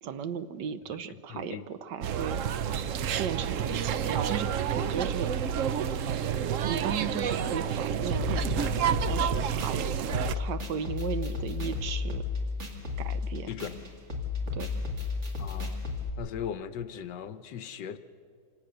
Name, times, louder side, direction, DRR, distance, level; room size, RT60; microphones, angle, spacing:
voice 1, 0.0-2.4 3.2-5.3 6.7-8.8 9.1-9.9 10.3-12.2 13.0-13.5 14.5-14.7, right 7 dB, 65° right, 12 dB, 1.3 m, -35 dB
voice 2, 0.9-1.6 13.5-13.8 15.4-15.8 16.2-18.0, left 8 dB, 65° left, 12 dB, 1.2 m, -38 dB
sound 1, 2.0-10.3, right 8 dB, 85° right, 0.6 m, -29 dB
sound 2, 8.1-16.1, left 5 dB, 35° right, 2.5 m, -34 dB
26.0 x 18.0 x 6.7 m, 2.4 s
omnidirectional pair, 2.2 m